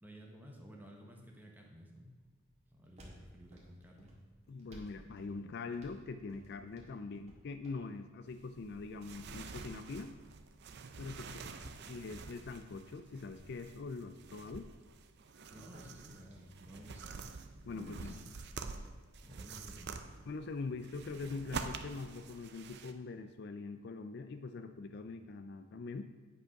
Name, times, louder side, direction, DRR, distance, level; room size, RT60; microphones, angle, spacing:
voice 1, 0.0-2.1 2.7-4.2 11.2-11.8 15.5-17.2 17.7-18.3 19.2-20.2, equal, 10° right, 0 dB, 1.1 m, -54 dB
sound 1, 2.0-19.1, equal, 30° right, 1.7 m, -63 dB
voice 2, 4.5-10.1 11.0-11.3 11.9-14.7 17.6-18.2 20.3-26.1, left 3 dB, 50° left, 9 dB, 0.4 m, -43 dB
sound 2, 8.3-22.9, right 4 dB, 50° right, 0.5 m, -48 dB
8.8 x 5.3 x 5.8 m, 1.3 s
head